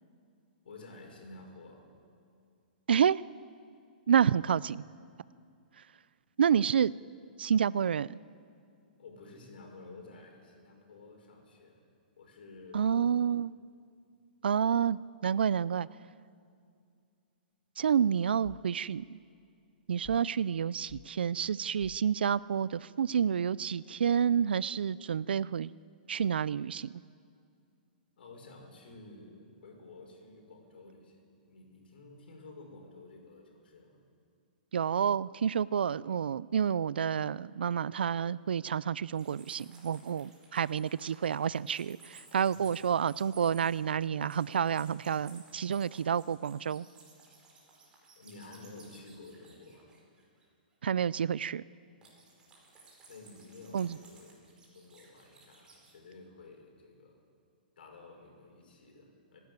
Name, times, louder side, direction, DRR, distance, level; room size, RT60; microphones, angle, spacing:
voice 1, 0.6-1.9 9.0-11.8 12.2-13.2 28.2-34.0 42.4-42.6 48.1-49.9 53.1-54.4 54.7-57.2 57.8-59.4, left 3 dB, 75° left, 2 dB, 5.9 m, -52 dB
voice 2, 2.9-3.2 4.1-4.8 6.4-6.9 7.4-8.2 12.7-13.5 14.4-15.9 17.8-19.0 19.9-25.7 26.1-26.9 34.7-46.9 50.8-51.6 53.7-54.0, right 8 dB, 90° right, 20 dB, 0.4 m, -29 dB
sound 1, 18.4-18.8 20.0-20.4 20.9-21.2 21.8-22.2, left 13 dB, 25° left, 0.6 m, -53 dB
sound 2, 39.1-50.4 52.0-56.0, right 4 dB, 15° right, 4.6 m, -58 dB
24.5 x 11.5 x 9.6 m, 2.4 s
hypercardioid pair, 155°, 5 cm